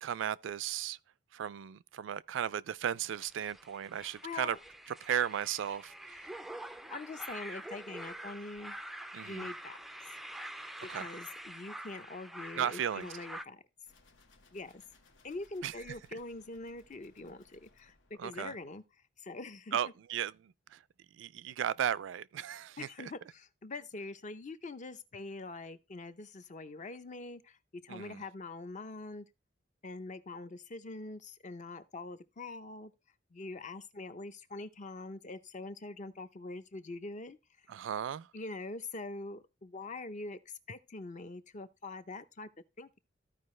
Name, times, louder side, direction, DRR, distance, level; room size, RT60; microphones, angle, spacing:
voice 1, 0.0-1.0 1.3-4.6 5.0-6.3 9.1-9.5 10.9-11.1 12.6-13.1 15.6-15.7 18.2-18.5 19.7-20.8 21.2-23.1 27.9-28.2 37.7-38.3, right 9 dB, 80° right, 0.3 m, -35 dB
sound 1, 3.2-13.4, right 1 dB, ahead, 0.3 m, -46 dB
voice 2, 4.2-4.6 6.9-8.8 9.2-9.8 10.8-13.6 14.5-14.8 15.2-18.8 19.2-19.8 22.8-29.3 29.8-32.9 33.3-37.4 38.3-40.4 40.7-42.5 42.8-43.0, left 3 dB, 40° left, 0.6 m, -44 dB
sound 2, 13.9-18.8, left 2 dB, 80° left, 1.3 m, -65 dB
14.0 x 4.8 x 3.1 m
head